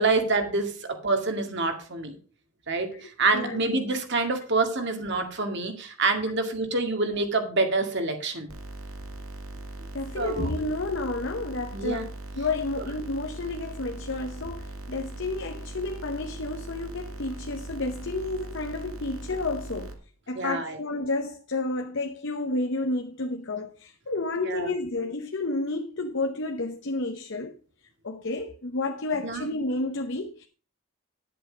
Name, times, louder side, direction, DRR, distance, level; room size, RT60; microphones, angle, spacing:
voice 1, 0.0-2.2 2.7-8.5 10.2-10.5 11.7-12.0 12.8-12.9 20.4-20.8 24.4-24.7 29.2-29.5, right 3 dB, 55° right, 2.1 m, -27 dB
voice 2, 2.9-3.6 4.8-4.9 9.9-12.1 12.3-20.0 20.3-27.5 28.0-30.5, left 2 dB, 55° left, 0.9 m, -31 dB
sound 1, 8.5-19.9, right 2 dB, 70° right, 2.1 m, -40 dB
11.0 x 7.7 x 5.1 m
head